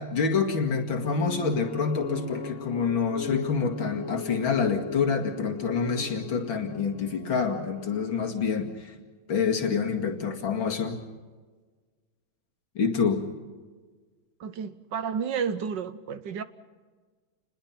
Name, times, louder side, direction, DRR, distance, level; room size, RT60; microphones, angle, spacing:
voice 1, 0.0-8.9 9.3-11.0 12.8-13.2, left 5 dB, 75° left, 3 dB, 3.0 m, -27 dB
sound 1, 1.0-8.7, left 4 dB, 35° left, 2.1 m, -39 dB
voice 2, 14.4-16.4, right 6 dB, 65° right, 12 dB, 1.5 m, -31 dB
28.5 x 21.0 x 5.9 m, 1.4 s
omnidirectional pair, 2.2 m